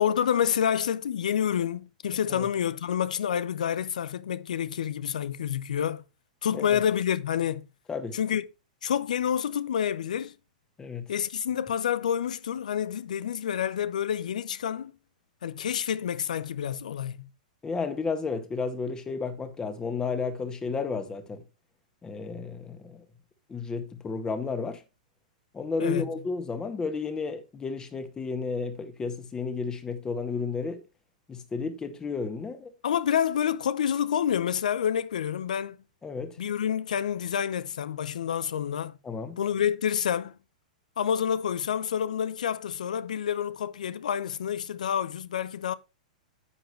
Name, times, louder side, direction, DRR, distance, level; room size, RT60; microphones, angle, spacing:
voice 1, 0.0-6.0 6.4-7.6 8.1-8.4 8.8-10.3 11.1-14.9 15.4-17.3 25.8-26.1 32.8-35.8 36.4-39.0 39.4-40.4 41.0-45.7, left 9 dB, 70° left, 0.6 m, -28 dB
voice 2, 17.6-21.4 22.0-23.0 23.5-24.8 25.5-30.8 31.3-32.7 36.0-36.4 39.0-39.4, left 4 dB, 15° left, 1.8 m, -32 dB
10.0 x 8.0 x 3.1 m
figure-of-eight pair, 105°, 4 cm